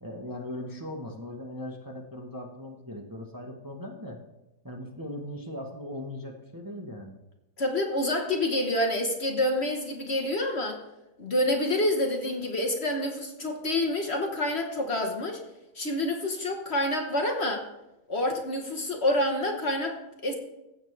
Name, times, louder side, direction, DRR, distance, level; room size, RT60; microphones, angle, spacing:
voice 1, 0.0-4.2 4.6-7.2, left 1 dB, 20° right, 1 dB, 0.6 m, -39 dB
voice 2, 7.6-10.8 11.2-15.4 15.7-17.7 18.1-20.3, left 1 dB, 45° left, 3 dB, 1.0 m, -27 dB
15.5 x 7.2 x 3.3 m, 0.95 s
omnidirectional pair, 2.1 m